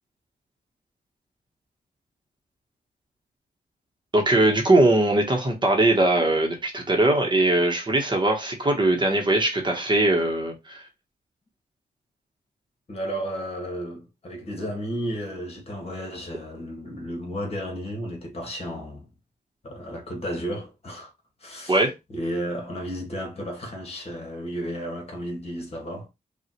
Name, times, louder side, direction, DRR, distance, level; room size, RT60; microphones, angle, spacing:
voice 1, 4.1-10.8 21.7-21.9, right 2 dB, 30° right, 1.1 m, -21 dB
voice 2, 12.9-19.1 19.6-21.1 21.4-21.8 22.1-26.1, equal, 40° left, 1.7 m, -33 dB
5.3 x 2.5 x 3.0 m
wide cardioid pair, 115°, 16 cm